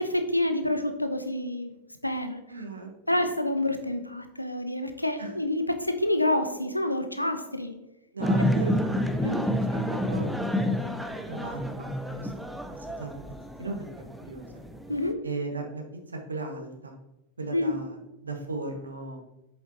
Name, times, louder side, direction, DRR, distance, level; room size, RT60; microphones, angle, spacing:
voice 1, 0.0-1.7 2.0-2.4 3.1-7.7 9.2-9.5 14.9-15.2 17.5-17.8, left 1 dB, 90° left, 7 dB, 0.9 m, -28 dB
voice 2, 2.5-3.3 5.2-5.4 8.1-9.1 9.9-11.0 11.3-12.3 12.7-13.2 13.6-14.6 15.2-16.9 17.4-19.2, right 3 dB, 75° right, 2 dB, 1.5 m, -37 dB
Sudan soufi chant & dance in Omdurman, 8.2-15.1, equal, ahead, 0.7 m, -29 dB
8.2 x 7.1 x 2.9 m, 0.95 s
figure-of-eight pair, 90°, 0 cm